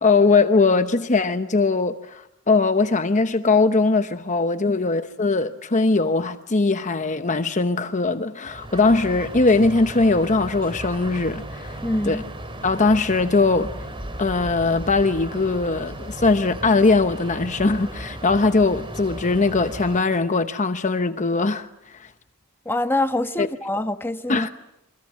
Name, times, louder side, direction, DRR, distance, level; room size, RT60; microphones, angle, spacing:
voice 1, 0.0-11.8 12.1-12.2 12.6-13.7 14.2-22.1 23.4-23.5 24.3-24.5, left 3 dB, 35° left, 0.9 m, -20 dB
sound 1, 8.4-20.0, right 1 dB, 25° right, 3.3 m, -35 dB
voice 2, 11.8-12.2 22.6-24.5, left 1 dB, 10° left, 1.3 m, -25 dB
30.0 x 25.0 x 7.4 m
head